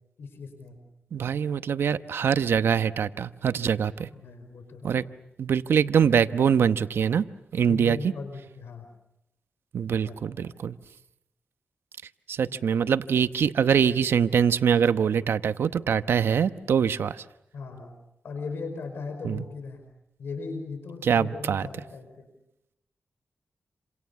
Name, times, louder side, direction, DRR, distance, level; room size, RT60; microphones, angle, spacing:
voice 1, 0.2-0.8 4.1-4.9 7.7-8.9 9.9-10.6 12.5-12.6 17.5-17.9 18.2-19.9 20.2-22.3, left 4 dB, 90° left, 7 dB, 5.2 m, -38 dB
voice 2, 1.1-4.1 4.8-5.0 5.4-7.3 7.5-8.1 9.7-10.7 12.3-17.2 19.2-19.4 21.0-21.6, right 7 dB, 90° right, 12 dB, 1.0 m, -24 dB
29.0 x 27.0 x 7.2 m, 0.85 s
cardioid pair, 70°, 4 cm